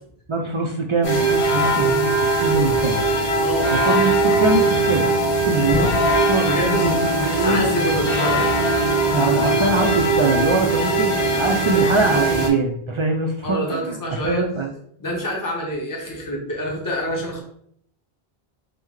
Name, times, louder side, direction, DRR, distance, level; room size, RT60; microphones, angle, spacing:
voice 1, 0.3-3.1 3.7-5.1 5.3-6.0 6.3-7.0 7.3-7.6 9.1-14.7, right 3 dB, 55° right, 1 dB, 0.3 m, -23 dB
sound 1, 1.0-12.5, right 2 dB, 65° left, 1.0 m, -20 dB
voice 2, 3.4-3.7 6.4-6.9 7.1-8.5 13.4-14.4 15.0-17.4, equal, 20° left, -1 dB, 0.8 m, -26 dB
5.5 x 2.1 x 3.1 m, 0.66 s
omnidirectional pair, 1.0 m